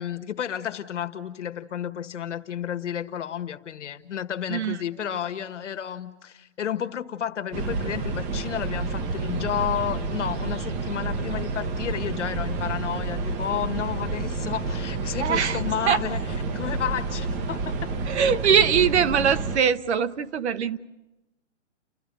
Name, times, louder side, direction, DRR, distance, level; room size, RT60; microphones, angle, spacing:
voice 1, 0.0-16.2 16.5-17.9, left 9 dB, 75° left, 9 dB, 1.6 m, -31 dB
sound 1, 7.5-19.6, right 3 dB, 20° right, 0.8 m, -29 dB
voice 2, 15.2-15.6 15.9-16.0 18.1-20.8, right 7 dB, 65° right, 13 dB, 1.1 m, -22 dB
30.0 x 13.5 x 9.5 m, 1.0 s
hypercardioid pair, 150°, 36 cm